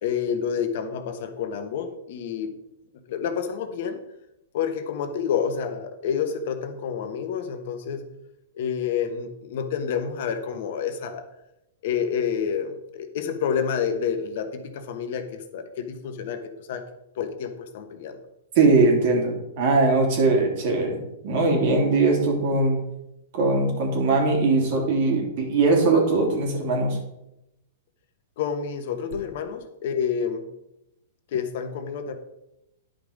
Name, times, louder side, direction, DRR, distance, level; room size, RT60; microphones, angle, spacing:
voice 1, 0.0-2.5 3.1-4.0 4.5-8.0 8.5-11.2 11.8-16.4 16.7-16.8 17.2-18.2 28.4-30.4 31.3-32.1, left 7 dB, 60° left, 8 dB, 1.2 m, -28 dB
voice 2, 18.5-22.8 23.3-27.0, right 3 dB, 55° right, 1 dB, 3.1 m, -21 dB
10.5 x 5.2 x 5.1 m, 0.87 s
hypercardioid pair, 120°, 0 cm